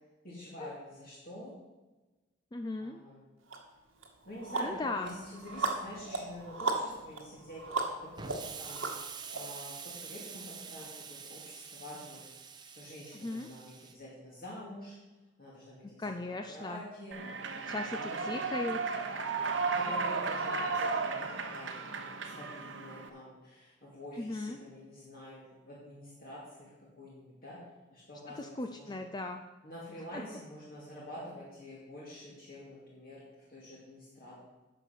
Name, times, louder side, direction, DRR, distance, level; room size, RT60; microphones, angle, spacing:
voice 1, 0.2-1.5 2.8-3.3 4.3-7.6 8.0-8.9 9.3-12.2 12.7-15.0 15.4-17.2 17.9-18.3 19.7-21.1 21.5-27.6 27.9-29.0 29.6-34.4, left 1 dB, 50° left, -6 dB, 2.4 m, -47 dB
voice 2, 2.5-3.0 4.6-5.1 13.2-13.5 16.0-16.8 17.7-19.0 24.2-24.6 28.4-29.4 30.1-30.2, left 2 dB, 20° left, 6 dB, 0.4 m, -37 dB
sound 1, 3.5-3.6 4.0-9.4, right 3 dB, 90° right, 1.6 m, -36 dB
Explosion, 8.2-13.9, right 6 dB, 20° right, 0.7 m, -46 dB
Human voice / Clapping / Cheering, 17.1-23.1, right 4 dB, 70° right, 1.0 m, -34 dB
11.0 x 6.9 x 5.8 m, 1.2 s
head